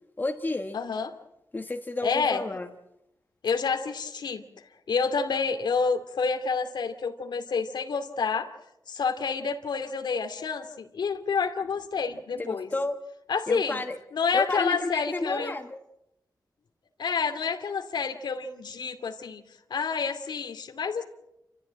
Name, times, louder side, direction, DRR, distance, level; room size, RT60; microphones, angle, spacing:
voice 1, 0.2-0.8 1.5-2.7 12.4-13.0 13.5-14.0 14.3-15.8, left 2 dB, 25° left, 4 dB, 1.3 m, -31 dB
voice 2, 0.7-1.1 2.0-2.4 3.4-4.4 4.9-8.5 8.9-12.7 13.3-13.8 14.1-15.5 17.0-19.4 19.7-21.0, left 5 dB, 85° left, 5 dB, 2.4 m, -28 dB
29.5 x 14.5 x 8.7 m, 0.87 s
wide cardioid pair, 135°, 7 cm